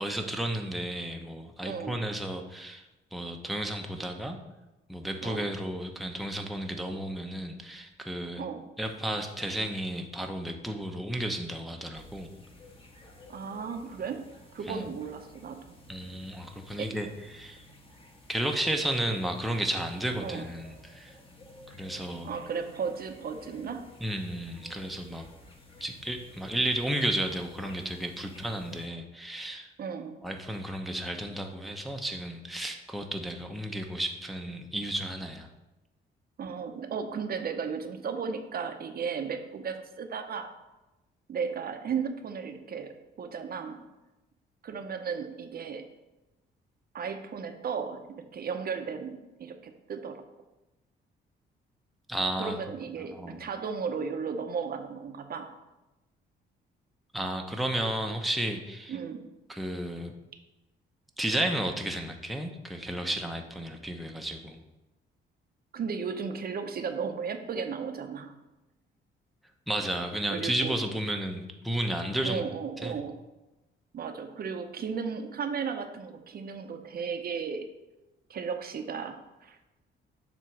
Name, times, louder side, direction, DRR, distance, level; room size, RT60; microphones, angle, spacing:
voice 1, 0.0-2.8 3.1-4.4 4.9-8.4 8.8-12.3 14.7-14.9 15.9-17.6 18.3-21.2 21.7-22.3 24.0-25.3 25.8-29.7 30.2-35.5 52.1-52.6 53.0-53.4 57.1-59.0 59.5-60.1 61.2-64.6 69.7-72.4 72.8-73.0, right 1 dB, ahead, 3 dB, 0.7 m, -33 dB
voice 2, 1.6-2.0 5.2-5.5 8.4-8.7 13.3-14.2 14.5-15.8 16.8-16.9 20.2-20.4 22.2-23.8 29.8-30.2 36.4-40.5 41.3-43.8 44.6-45.8 46.9-50.2 52.4-55.5 58.9-59.3 65.7-68.3 70.3-71.0 72.2-73.2 73.9-77.6 78.3-79.6, right 6 dB, 50° right, 6 dB, 0.7 m, -35 dB
sound 1, 11.9-28.9, left 2 dB, 25° left, 1.3 m, -53 dB
7.4 x 3.0 x 5.9 m, 1.0 s
cardioid pair, 90°, 20 cm